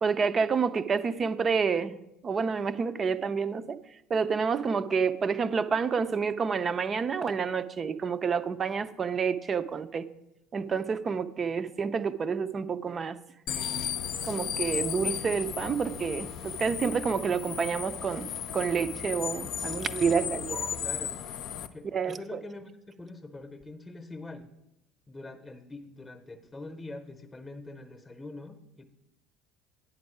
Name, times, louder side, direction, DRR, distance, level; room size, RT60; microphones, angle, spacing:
voice 1, 0.0-2.0 2.2-3.8 4.1-10.1 10.5-13.2 14.2-18.3 18.5-20.8 21.9-22.4, right 5 dB, 30° right, 12 dB, 0.5 m, -29 dB
sound 1, 13.5-21.7, left 8 dB, 50° left, 0.5 m, -35 dB
voice 2, 20.8-21.2 21.7-22.7 23.0-24.5 25.1-28.8, left 2 dB, 15° left, 7 dB, 0.9 m, -44 dB
9.5 x 6.0 x 4.9 m, 0.86 s
figure-of-eight pair, 65°, 0 cm